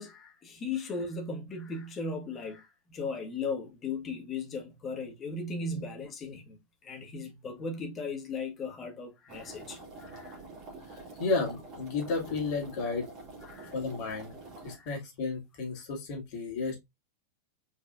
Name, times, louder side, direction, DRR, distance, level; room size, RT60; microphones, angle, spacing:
voice 1, 0.0-6.6 6.8-10.4 13.5-13.7 14.7-14.9, left 3 dB, 25° left, 1.5 m, -37 dB
sound 1, 9.3-14.8, right 2 dB, 35° right, 2.5 m, -47 dB
voice 2, 10.9-13.1 13.7-14.3 14.6-16.8, left 4 dB, 45° left, 2.2 m, -33 dB
4.7 x 4.6 x 2.5 m
figure-of-eight pair, 90°, 0 cm